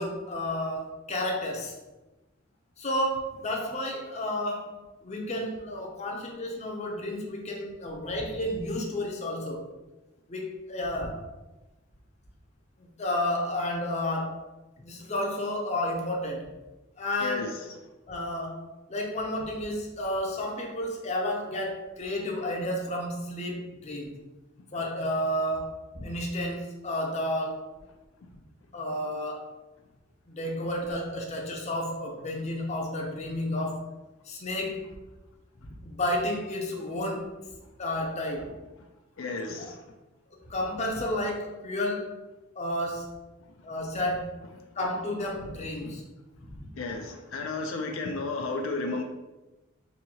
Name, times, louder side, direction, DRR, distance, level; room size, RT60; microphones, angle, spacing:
voice 1, 0.0-1.7 2.8-9.7 10.3-11.3 12.8-14.5 14.8-16.5 17.0-17.5 18.1-24.1 24.7-27.7 28.7-29.5 30.3-33.9 34.2-34.9 35.6-37.4 37.8-38.6 40.3-42.2 42.6-43.1 43.6-44.4 44.8-46.0 46.5-46.7, left 1 dB, 35° left, 0 dB, 0.6 m, -31 dB
voice 2, 17.2-17.7 28.2-28.3 39.2-39.8 45.8-46.0 46.7-49.0, left 3 dB, 75° left, 3 dB, 0.4 m, -33 dB
4.1 x 2.7 x 2.8 m, 1.1 s
head